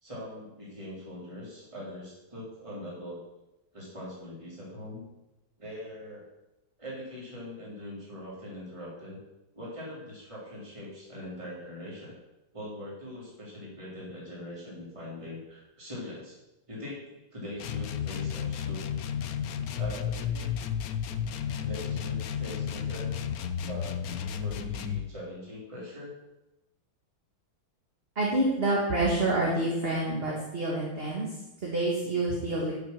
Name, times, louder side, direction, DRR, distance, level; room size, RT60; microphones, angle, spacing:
voice 1, 0.0-3.2 3.7-5.1 5.6-6.3 6.8-9.2 9.5-12.1 12.5-16.4 16.7-18.8 19.7-20.5 21.6-23.1 23.7-26.1, left 1 dB, 15° right, -6 dB, 3.6 m, -42 dB
sound 1, 17.6-25.1, left 8 dB, 65° left, 0.9 m, -32 dB
voice 2, 28.2-32.7, right 2 dB, 30° right, -4 dB, 2.0 m, -28 dB
12.0 x 5.7 x 6.0 m, 0.96 s
omnidirectional pair, 2.2 m